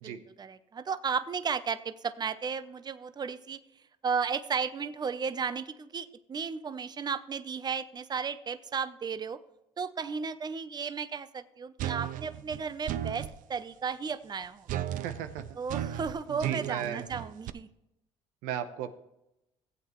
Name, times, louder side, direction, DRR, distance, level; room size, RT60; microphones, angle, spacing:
voice 1, 0.0-3.6 4.0-9.4 9.8-14.8 15.6-17.7, right 6 dB, 30° right, 12 dB, 0.6 m, -34 dB
sound 1, 11.8-13.4 14.7-17.5, right 11 dB, 70° right, 0.5 m, -35 dB
voice 2, 14.9-15.6 16.3-17.1 18.4-18.9, right 9 dB, 90° right, 9 dB, 0.9 m, -36 dB
15.5 x 8.2 x 3.1 m, 0.87 s
supercardioid pair, 85°, 14 cm